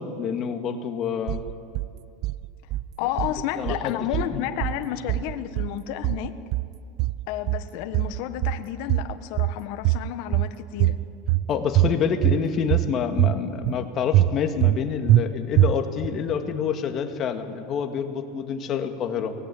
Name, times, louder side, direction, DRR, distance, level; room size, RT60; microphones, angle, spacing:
voice 1, 0.0-1.4 3.6-4.1 4.3-4.5 11.5-19.3, left 7 dB, 35° left, 7 dB, 2.0 m, -27 dB
sound 1, 1.3-1.9 2.2-2.9 3.2-3.9 4.1-4.8 5.1-5.8 6.0-6.7 7.0-7.7 7.9-8.6 8.9-9.6 9.8-10.5 10.8-11.5 11.8-12.4 12.7-13.4 13.6-13.8 14.1-14.8 15.1-15.2 15.6-16.1, right 15 dB, 50° right, 0.5 m, -22 dB
voice 2, 3.0-6.3 7.3-11.0, left 11 dB, 60° left, 9 dB, 1.4 m, -31 dB
23.5 x 19.0 x 8.5 m, 2.4 s
supercardioid pair, 140°, 0 cm